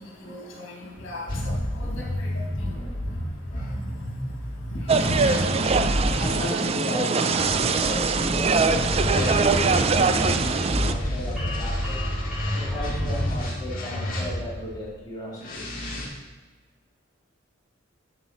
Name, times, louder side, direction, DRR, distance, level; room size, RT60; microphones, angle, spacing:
voice 1, 0.0-5.5, left 1 dB, 70° left, -1 dB, 1.8 m, -37 dB
sound 1, 1.3-6.3 7.3-14.7 15.4-16.0, equal, 45° left, 1.8 m, -29 dB
sound 2, 4.9-10.9, right 4 dB, 30° right, 0.3 m, -23 dB
voice 2, 6.2-12.0 12.5-15.7, left 1 dB, 20° left, -8 dB, 2.6 m, -35 dB
sound 3, 8.5-13.6, left 2 dB, 5° right, 2.3 m, -41 dB
11.0 x 4.4 x 4.3 m, 1.3 s
head